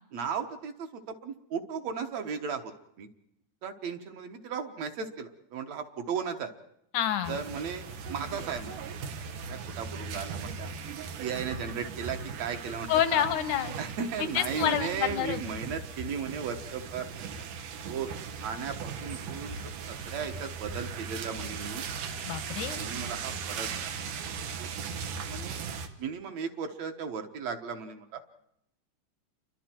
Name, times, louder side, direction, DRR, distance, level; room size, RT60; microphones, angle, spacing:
voice 1, 0.1-2.7 3.0-3.1 3.6-6.5 7.3-8.8 9.4-10.7 11.2-13.3 13.8-17.1 17.9-18.1 18.4-19.6 19.9-21.9 22.8-23.9 24.5-24.7 25.3-28.2, right 6 dB, 65° right, 5 dB, 2.3 m, -36 dB
voice 2, 6.9-7.4 12.9-13.8 14.3-15.4 22.2-22.8, left 11 dB, 80° left, 11 dB, 2.6 m, -28 dB
sound 1, 7.2-25.9, right 5 dB, 85° right, 2.9 m, -38 dB
29.0 x 23.5 x 4.5 m, 0.77 s
omnidirectional pair, 3.6 m